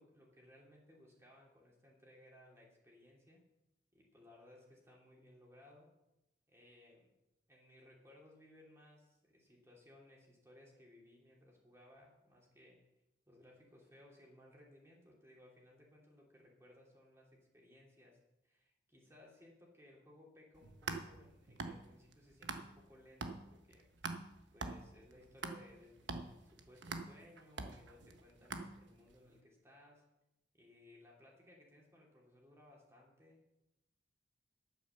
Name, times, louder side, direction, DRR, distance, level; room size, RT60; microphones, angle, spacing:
voice 1, 0.0-3.4 3.9-5.9 6.5-7.1 7.5-12.9 13.3-23.9 24.5-30.0 30.5-33.4, left 1 dB, 15° right, -2 dB, 2.8 m, -62 dB
sound 1, 20.5-22.9 23.2-29.1, right 3 dB, 90° right, 1.2 m, -45 dB
10.5 x 9.1 x 6.8 m, 0.91 s
head